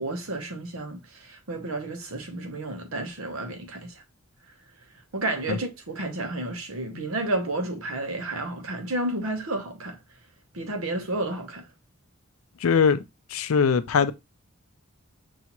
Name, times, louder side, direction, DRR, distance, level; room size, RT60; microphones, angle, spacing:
voice 1, 0.0-4.0 5.1-10.0 10.5-11.7, right 2 dB, 85° right, 0.9 m, -31 dB
voice 2, 12.6-13.0 13.3-14.1, left 6 dB, 85° left, 0.4 m, -21 dB
5.5 x 2.4 x 2.9 m
head